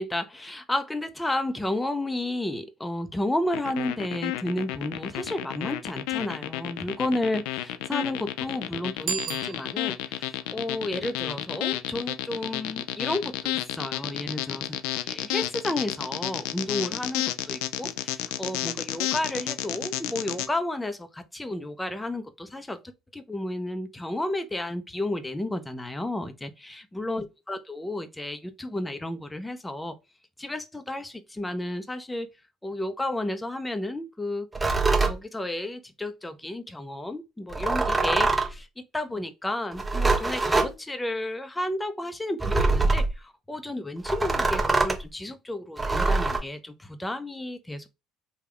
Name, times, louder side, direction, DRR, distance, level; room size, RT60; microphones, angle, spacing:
voice 1, 0.0-22.8 23.1-30.0 30.4-32.3 32.6-34.5 35.0-47.9, left 1 dB, 15° left, 0.6 m, -32 dB
sound 1, 3.5-20.5, left 14 dB, 80° left, 0.3 m, -31 dB
Bicycle bell, 9.0-10.2, right 7 dB, 60° right, 0.4 m, -34 dB
sound 2, 34.5-35.2 37.5-38.6 39.7-40.7 42.4-43.1 44.0-45.0 45.8-46.4, right 3 dB, 15° right, 0.8 m, -24 dB
3.4 x 2.3 x 3.3 m
hypercardioid pair, 65°, 0 cm